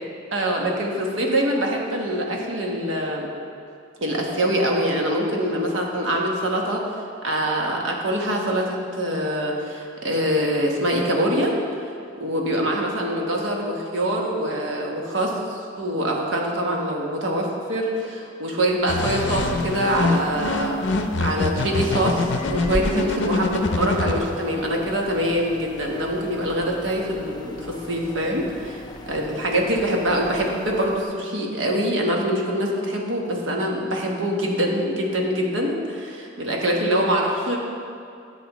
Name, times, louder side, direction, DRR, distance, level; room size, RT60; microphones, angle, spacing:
voice 1, 0.3-3.3 4.0-6.8 7.2-11.6 12.2-37.6, equal, 90° right, 0 dB, 1.2 m, -24 dB
sound 1, 18.9-24.2, left 3 dB, 65° left, 0.6 m, -24 dB
sound 2, 19.3-31.0, left 2 dB, 25° left, 0.4 m, -38 dB
11.0 x 7.1 x 3.0 m, 2.5 s
head